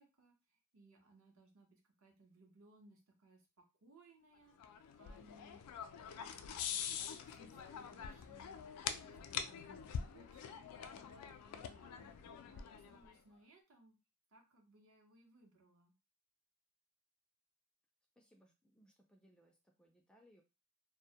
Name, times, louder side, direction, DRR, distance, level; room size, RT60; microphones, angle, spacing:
voice 1, 0.0-10.6 10.9-14.0 14.3-15.9, right 2 dB, 65° right, 2 dB, 0.7 m, -66 dB
sound 1, 4.6-13.1, left 7 dB, 90° left, 0.3 m, -45 dB
voice 2, 18.2-20.4, equal, 5° left, 1 dB, 0.3 m, -68 dB
2.1 x 2.1 x 2.7 m, 0.27 s
head